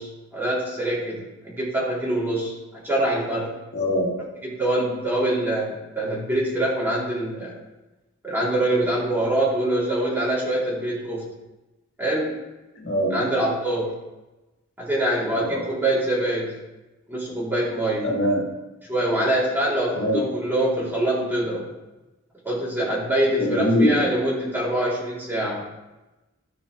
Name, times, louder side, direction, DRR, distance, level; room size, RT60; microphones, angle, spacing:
voice 1, 0.0-3.5 4.4-7.6 8.2-11.3 12.0-12.4 13.1-13.9 14.8-16.5 17.1-18.1 18.9-21.7 22.4-25.6, right 1 dB, 10° right, -7 dB, 3.0 m, -24 dB
voice 2, 3.7-4.1 12.8-13.2 15.3-15.6 18.0-18.4 19.9-20.2 23.4-24.1, equal, 55° left, -7 dB, 3.0 m, -22 dB
14.0 x 5.3 x 3.2 m, 1.1 s
head